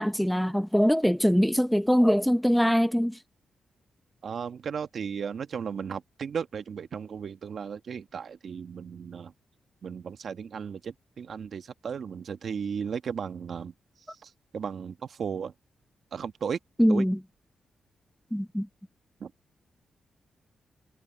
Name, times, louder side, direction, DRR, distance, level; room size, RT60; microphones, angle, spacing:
voice 1, 0.0-3.2 16.8-17.2 18.3-18.7, equal, ahead, 0.7 m, -23 dB
voice 2, 4.2-9.3 9.8-13.7 14.1-15.5 16.1-16.6 16.9-17.0 19.2-19.3, right 7 dB, 65° right, 1.2 m, -35 dB
cardioid pair, 75°, 0 cm